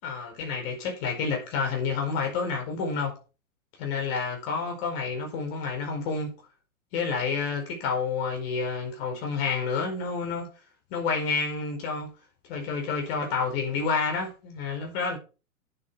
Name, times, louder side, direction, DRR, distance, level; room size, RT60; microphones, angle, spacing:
voice 1, 0.0-3.1 3.8-6.3 6.9-10.5 10.9-12.1 12.5-15.2, left 5 dB, 45° left, 4.9 m, -29 dB
9.1 x 7.9 x 4.7 m
figure-of-eight pair, 105°, 43 cm